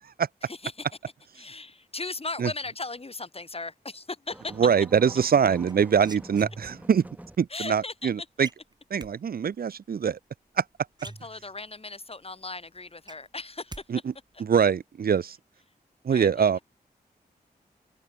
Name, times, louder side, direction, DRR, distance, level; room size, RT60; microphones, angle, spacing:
voice 1, 0.4-0.9 1.3-4.6 7.5-8.1 11.0-13.9 16.1-16.6, left 3 dB, 35° left, 4.9 m, -37 dB
sound 1, 4.3-7.4, right 1 dB, 10° right, 2.0 m, -46 dB
voice 2, 4.6-7.1 7.4-8.5 8.9-10.2 10.6-10.7 14.5-15.4 16.0-16.6, right 7 dB, 65° right, 0.8 m, -23 dB
sound 2, 5.7-7.0 8.4-9.1 10.5-10.6 10.9-11.8 12.2-12.3 12.6-13.9 14.1-14.6, right 2 dB, 25° right, 5.9 m, -45 dB
open air
cardioid pair, 60°, 17 cm